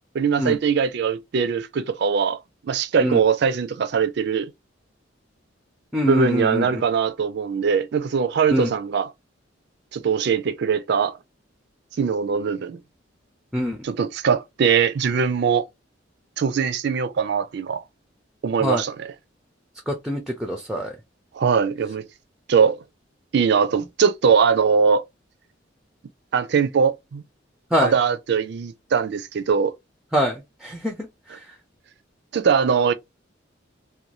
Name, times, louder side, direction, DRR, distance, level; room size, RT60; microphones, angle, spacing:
voice 1, 0.1-4.5 6.0-9.1 9.9-11.2 12.0-12.8 13.8-15.6 16.4-17.8 18.4-19.1 21.3-22.0 22.5-22.8 23.3-25.0 26.3-27.2 27.8-29.7 32.3-32.9, right 6 dB, 60° right, 0.4 m, -21 dB
voice 2, 5.9-6.8 8.5-8.7 13.5-13.8 18.6-18.8 19.9-20.9 27.7-27.9 30.1-31.1, equal, ahead, 0.4 m, -24 dB
2.6 x 2.2 x 2.9 m
head